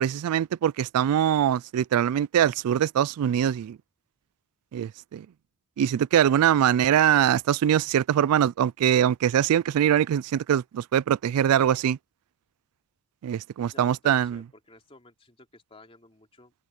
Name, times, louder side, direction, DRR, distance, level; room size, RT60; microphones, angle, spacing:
voice 1, 0.0-3.8 4.7-5.3 5.8-12.0 13.2-14.4, right 9 dB, 80° right, 0.3 m, -23 dB
voice 2, 13.6-16.5, left 2 dB, 25° left, 3.1 m, -53 dB
head